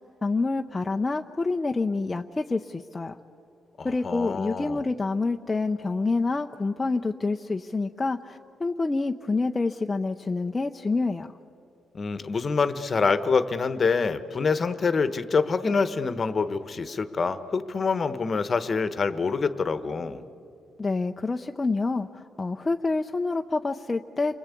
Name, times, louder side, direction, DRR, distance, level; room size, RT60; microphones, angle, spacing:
voice 1, 0.0-3.2 3.8-11.3 20.8-24.4, left 3 dB, 20° left, 3 dB, 0.7 m, -27 dB
voice 2, 3.8-4.8 11.9-20.2, left 4 dB, 35° left, 12 dB, 1.1 m, -26 dB
30.0 x 22.5 x 8.4 m, 2.7 s
cardioid pair, 120°, 0 cm